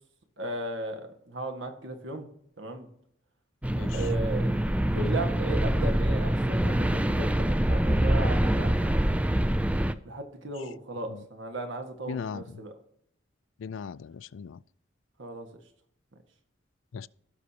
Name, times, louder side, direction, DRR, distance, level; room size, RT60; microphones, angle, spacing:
voice 1, 0.4-2.2 2.6-2.9 3.9-4.5 4.8-9.1 10.0-12.7 15.2-15.6, right 2 dB, 70° right, 1.6 m, -36 dB
sound 1, 3.6-9.9, right 1 dB, 5° right, 0.3 m, -25 dB
voice 2, 12.1-12.6 13.6-14.6 16.9-17.1, left 6 dB, 75° left, 0.4 m, -38 dB
17.0 x 6.5 x 2.9 m
head